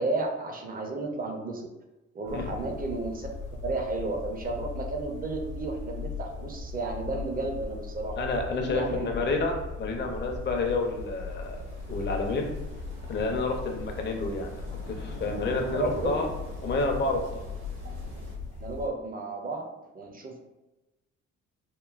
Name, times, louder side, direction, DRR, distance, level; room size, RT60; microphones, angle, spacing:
voice 1, 0.0-1.7 2.1-3.3 3.6-8.1 8.5-9.1 15.7-16.1 17.8-18.0 18.6-19.7 19.9-20.4, right 3 dB, 30° right, 2 dB, 0.5 m, -32 dB
sound 1, 2.2-18.9, left 3 dB, 85° left, 0.6 m, -39 dB
voice 2, 2.3-2.6 8.2-11.6 11.9-12.5 13.1-16.3 16.6-17.4, left 3 dB, 35° left, 2 dB, 0.5 m, -29 dB
sound 2, 9.4-18.4, equal, 60° right, 0.9 m, -46 dB
2.9 x 2.2 x 2.4 m, 1.0 s
cardioid pair, 90°, 30 cm